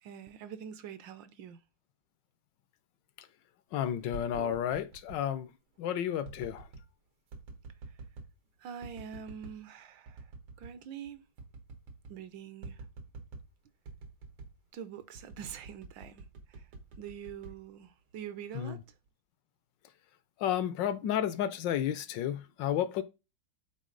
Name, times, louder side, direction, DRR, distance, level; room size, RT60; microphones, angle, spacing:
voice 1, 0.0-1.6 4.4-4.5 8.6-10.3 10.6-11.2 12.1-12.8 14.7-16.7 17.0-18.8, right 8 dB, 70° right, 1.3 m, -45 dB
voice 2, 3.7-5.5 5.8-6.6 18.5-18.8 20.4-23.0, left 10 dB, 70° left, 1.2 m, -32 dB
sound 1, 3.9-5.2 6.2-6.9 7.3-8.4 8.8-9.6 10.1-10.8 11.1-11.2 11.4-12.2 12.6-13.5 13.9-14.6 15.1-18.2 18.7-19.1, right 4 dB, 85° right, 2.2 m, -48 dB
8.4 x 3.9 x 3.8 m
omnidirectional pair, 2.3 m